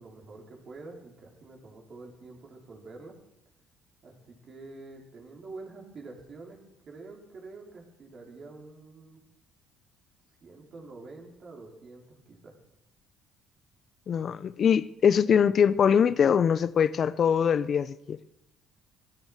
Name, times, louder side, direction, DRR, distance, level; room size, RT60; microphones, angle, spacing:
voice 1, 0.0-3.2 4.0-6.6 6.9-9.2 10.4-12.6, right 3 dB, 45° right, 4.6 m, -47 dB
voice 2, 14.1-18.2, left 7 dB, 45° left, 0.6 m, -23 dB
16.0 x 14.0 x 6.3 m
cardioid pair, 105°, 0 cm